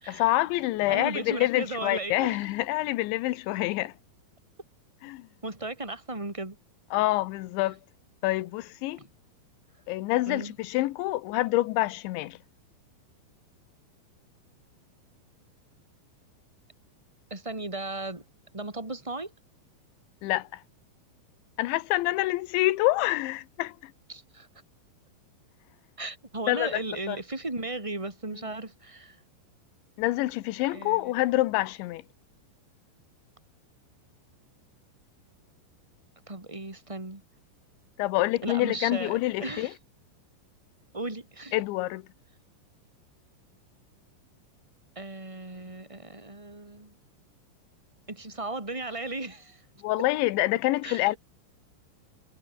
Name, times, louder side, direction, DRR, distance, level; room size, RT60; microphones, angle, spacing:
voice 1, 0.1-3.9 5.0-5.3 6.9-7.8 8.2-9.0 9.9-12.4 20.2-20.6 21.6-23.9 26.5-26.8 27.1-27.2 30.0-32.0 38.0-39.7 41.5-42.1 49.8-51.2, left 18 dB, 80° left, 3.2 m, -27 dB
voice 2, 0.9-2.4 5.4-6.6 10.3-10.5 17.3-18.2 18.5-19.3 24.1-24.5 26.0-29.2 30.7-31.1 36.3-37.2 38.4-39.7 40.9-41.5 44.9-47.0 48.1-49.6 50.8-51.0, right 2 dB, 5° right, 3.3 m, -36 dB
omnidirectional pair, 5.5 m